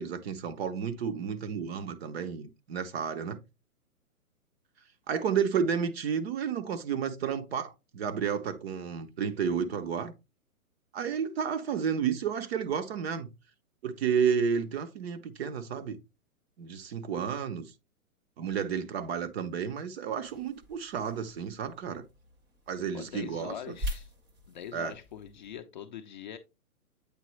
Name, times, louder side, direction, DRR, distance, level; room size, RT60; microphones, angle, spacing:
voice 1, 0.0-3.4 5.1-10.1 10.9-13.3 13.8-16.0 16.6-17.6 18.4-22.1 22.7-23.8 24.7-24.9, right 7 dB, 45° right, 0.8 m, -31 dB
sound 1, 20.2-25.6, equal, 15° right, 0.5 m, -43 dB
voice 2, 22.9-24.1 24.5-26.4, left 9 dB, 35° left, 0.5 m, -42 dB
8.3 x 3.7 x 3.1 m
hypercardioid pair, 140°, 45 cm